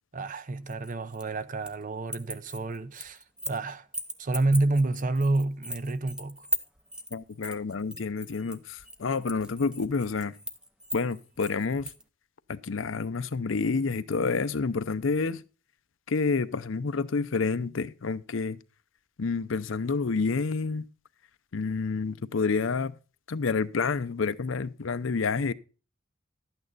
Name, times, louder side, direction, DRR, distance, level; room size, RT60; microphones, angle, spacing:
voice 1, 0.1-3.9 4.2-6.5, right 2 dB, 40° right, 0.6 m, -29 dB
sound 1, 0.7-1.8 2.1-3.6 3.9-12.0, equal, 5° right, 0.6 m, -38 dB
voice 2, 7.1-10.4 10.9-11.9 12.5-15.4 16.1-18.6 19.2-20.9 21.5-23.0 23.3-25.5, left 4 dB, 70° left, 0.6 m, -29 dB
12.0 x 8.9 x 3.9 m
head